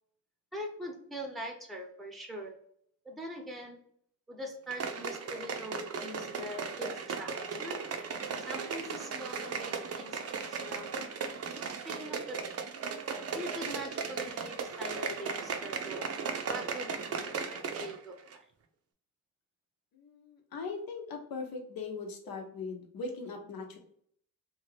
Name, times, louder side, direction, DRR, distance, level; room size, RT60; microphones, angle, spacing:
voice 1, 0.5-2.6 3.0-3.8 4.3-7.8 8.5-11.1 11.8-12.6 13.3-16.1 16.5-18.5, equal, ahead, 2 dB, 0.6 m, -43 dB
sound 1, 4.7-18.0 18.3-18.4, right 5 dB, 45° right, 0.5 m, -37 dB
voice 2, 19.9-23.8, left 4 dB, 90° left, 2 dB, 0.8 m, -40 dB
2.7 x 2.4 x 3.1 m, 0.65 s
cardioid pair, 100°, 35 cm